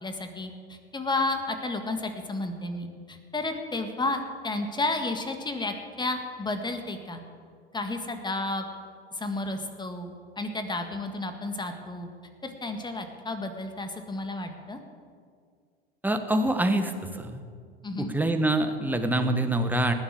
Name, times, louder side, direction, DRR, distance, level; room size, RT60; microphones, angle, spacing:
voice 1, 0.0-7.2 7.7-8.7 9.2-12.1 12.4-14.8 17.8-18.1, left 2 dB, 15° left, 6 dB, 1.8 m, -32 dB
voice 2, 16.0-17.4 18.0-19.9, right 1 dB, 5° right, 6 dB, 1.5 m, -25 dB
18.5 x 7.4 x 8.8 m, 2.1 s
hypercardioid pair, 85°, 30 cm